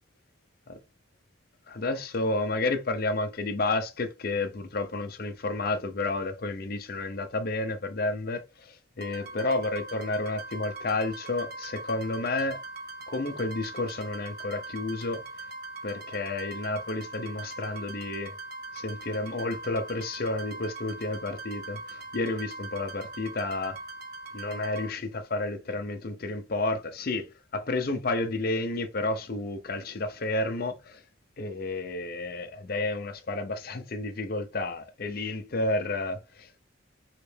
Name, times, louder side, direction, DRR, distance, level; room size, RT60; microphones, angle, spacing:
voice 1, 1.7-12.6 13.1-15.2 15.8-18.3 18.7-23.8 24.3-31.0 31.4-36.6, left 2 dB, 50° left, 0.6 m, -31 dB
sound 1, 9.0-24.9, right 2 dB, 50° right, 0.6 m, -41 dB
3.3 x 2.9 x 3.2 m
head